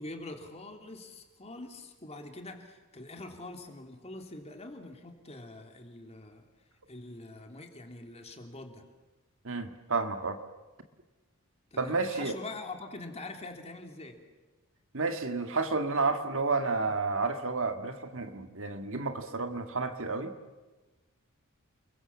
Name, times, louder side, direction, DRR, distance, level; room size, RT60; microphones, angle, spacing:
voice 1, 0.0-6.4 6.9-8.8 11.7-14.2, left 2 dB, 30° left, 4 dB, 3.0 m, -44 dB
voice 2, 9.4-10.4 11.8-12.3 14.9-20.3, right 3 dB, 65° right, 7 dB, 2.0 m, -31 dB
30.0 x 22.5 x 7.3 m, 1.2 s
head